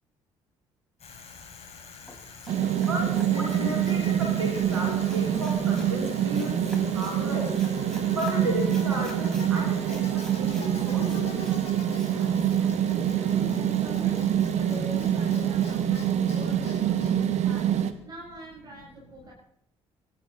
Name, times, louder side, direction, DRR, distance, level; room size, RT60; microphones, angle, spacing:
Bicycle, 1.0-18.1, left 4 dB, 45° left, 5.2 m, -46 dB
sound 1, 2.1-4.0 4.7-5.9 6.3-7.2 7.5-8.4 8.7-9.4 9.9-10.7 11.0-11.5 11.9-12.1 12.4-12.5, left 1 dB, 5° left, 5.2 m, -47 dB
sound 2, 2.5-17.9, right 10 dB, 50° right, 1.3 m, -25 dB
voice 1, 2.9-6.6 6.9-7.5 8.1-11.5, equal, 85° right, 1 dB, 3.1 m, -34 dB
voice 2, 11.9-17.7 18.0-19.3, equal, 30° right, -4 dB, 7.0 m, -44 dB
27.0 x 12.0 x 4.2 m, 0.68 s
figure-of-eight pair, 45°, 14 cm